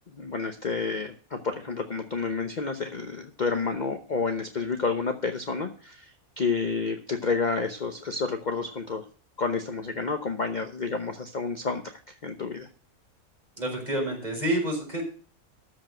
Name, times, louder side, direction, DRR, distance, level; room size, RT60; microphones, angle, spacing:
voice 1, 0.2-9.0 9.4-12.7, left 4 dB, 35° left, 6 dB, 0.9 m, -30 dB
voice 2, 13.6-15.0, right 1 dB, 30° right, -1 dB, 4.6 m, -28 dB
13.5 x 5.0 x 7.5 m, 0.41 s
omnidirectional pair, 1.5 m